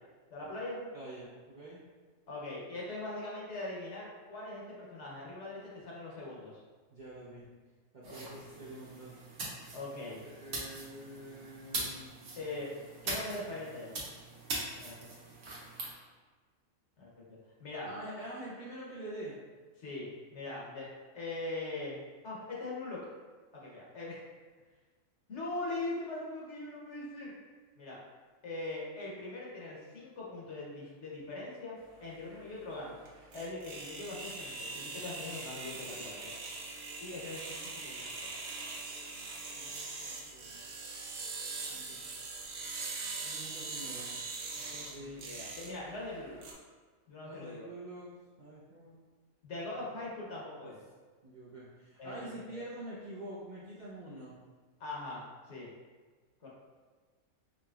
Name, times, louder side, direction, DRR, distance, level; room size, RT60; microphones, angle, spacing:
voice 1, 0.3-0.9 2.3-6.6 8.0-8.4 9.7-10.2 12.4-12.7 13.0-14.0 14.8-15.0 17.0-17.9 19.8-22.0 22.2-23.1 23.5-24.2 25.3-27.3 27.8-28.0 28.4-33.0 33.3-36.3 37.0-38.4 44.6-46.5 47.1-47.7 49.4-50.8 52.0-52.3 54.8-55.7 56.4-56.5, left 2 dB, 60° left, -4 dB, 1.1 m, -41 dB
voice 2, 0.9-1.8 6.9-7.5 7.9-9.1 10.2-12.2 17.8-19.4 39.5-40.6 41.7-42.1 43.2-44.1 44.9-45.3 47.2-48.9 49.7-49.8 50.6-50.7 51.2-54.3 56.4-56.5, right 1 dB, 45° right, -8 dB, 0.7 m, -46 dB
sound 1, 8.0-15.9, right 2 dB, 85° right, 1.3 m, -42 dB
sound 2, 31.8-46.5, right 3 dB, 70° right, 0.9 m, -42 dB
4.9 x 2.9 x 2.3 m, 1.4 s
omnidirectional pair, 1.4 m